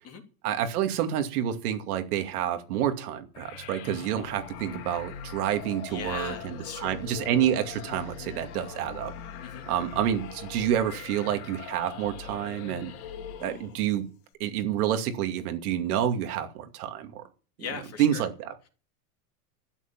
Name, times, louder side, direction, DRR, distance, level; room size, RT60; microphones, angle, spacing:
voice 1, 0.4-9.1 9.7-12.9 13.4-14.1 14.4-17.2 18.0-18.7, right 10 dB, 75° right, 2.5 m, -28 dB
sound 1, 3.3-13.9, left 7 dB, 65° left, 2.8 m, -41 dB
voice 2, 5.9-6.9 9.4-9.7 13.4-13.7 17.6-18.2, left 6 dB, 30° left, 3.1 m, -39 dB
12.5 x 8.4 x 7.4 m
supercardioid pair, 130°, 45 cm